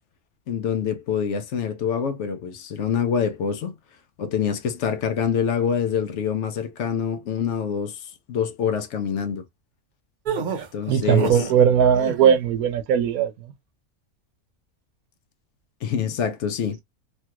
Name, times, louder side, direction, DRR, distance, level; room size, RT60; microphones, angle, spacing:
voice 1, 0.5-3.7 4.2-9.4 10.7-11.5 15.8-16.8, left 7 dB, 65° left, 0.9 m, -26 dB
sound 1, 10.2-11.6 11.9-12.4, right 6 dB, 55° right, 0.5 m, -29 dB
voice 2, 10.9-13.3, right 8 dB, 85° right, 1.1 m, -19 dB
3.2 x 2.3 x 2.8 m
omnidirectional pair, 1.5 m